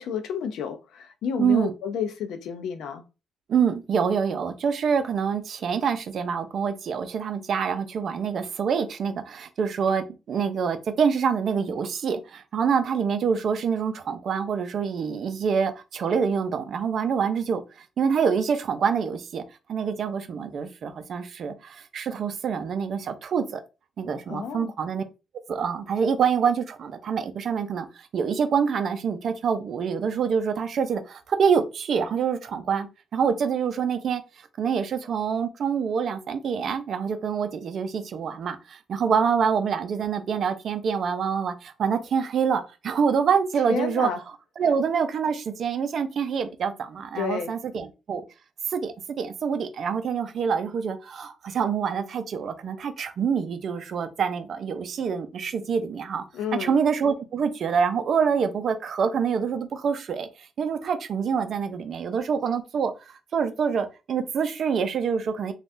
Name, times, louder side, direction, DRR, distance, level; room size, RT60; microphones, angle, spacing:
voice 1, 0.0-3.0 24.3-24.7 43.7-44.2 47.2-47.5 56.3-56.8, left 7 dB, 80° left, 0.5 m, -30 dB
voice 2, 1.4-1.7 3.5-19.4 19.7-23.6 24.0-25.0 25.5-34.2 34.6-44.1 44.6-48.2 48.7-56.2 56.6-65.5, right 6 dB, 60° right, 0.5 m, -26 dB
3.4 x 2.3 x 2.6 m
cardioid pair, 90°, 0 cm